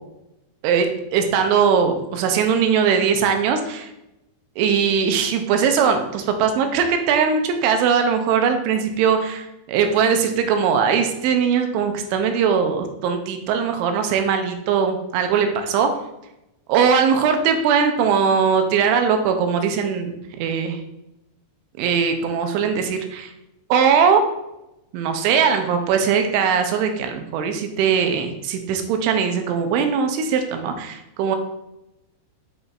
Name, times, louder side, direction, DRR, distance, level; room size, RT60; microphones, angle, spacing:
voice 1, 0.6-3.9 4.6-15.9 16.7-20.8 21.8-23.3 23.7-24.2 24.9-31.4, right 6 dB, 90° right, 6 dB, 3.1 m, -20 dB
7.6 x 5.1 x 2.4 m, 0.89 s
omnidirectional pair, 5.3 m